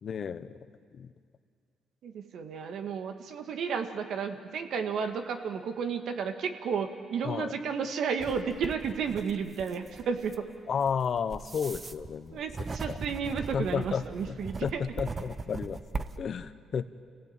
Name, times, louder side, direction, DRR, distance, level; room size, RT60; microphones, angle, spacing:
voice 1, 0.0-0.6 0.9-1.1 7.2-7.6 10.7-12.4 12.9-13.0 13.5-15.8 16.2-17.0, left 7 dB, 55° left, 13 dB, 1.0 m, -32 dB
voice 2, 2.0-10.5 12.3-14.8, right 6 dB, 70° right, 6 dB, 1.9 m, -32 dB
sound 1, 8.2-16.2, right 4 dB, 30° right, 1.0 m, -40 dB
27.5 x 17.0 x 9.0 m, 2.1 s
cardioid pair, 90°, 0 cm